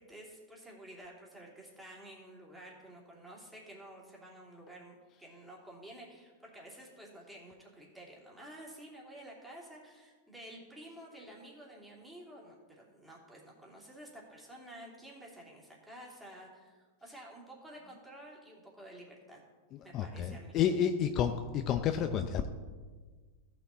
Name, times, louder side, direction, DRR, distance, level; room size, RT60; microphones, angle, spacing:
voice 1, 0.0-19.4 19.8-20.6, right 1 dB, 5° right, -3 dB, 3.0 m, -51 dB
voice 2, 19.9-22.5, left 8 dB, 40° left, 7 dB, 0.6 m, -30 dB
14.5 x 6.1 x 4.2 m, 1.4 s
hypercardioid pair, 120°, 0 cm